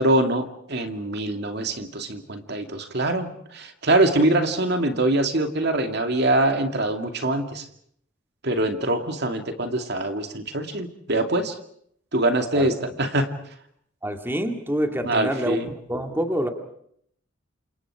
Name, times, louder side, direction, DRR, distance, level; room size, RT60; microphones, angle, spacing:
voice 1, 0.0-7.6 8.4-11.6 12.1-13.3 15.0-15.7, right 1 dB, 55° right, 6 dB, 2.4 m, -24 dB
voice 2, 14.0-15.6 15.9-16.5, equal, 10° right, 5 dB, 2.3 m, -26 dB
30.0 x 27.0 x 4.9 m, 0.67 s
head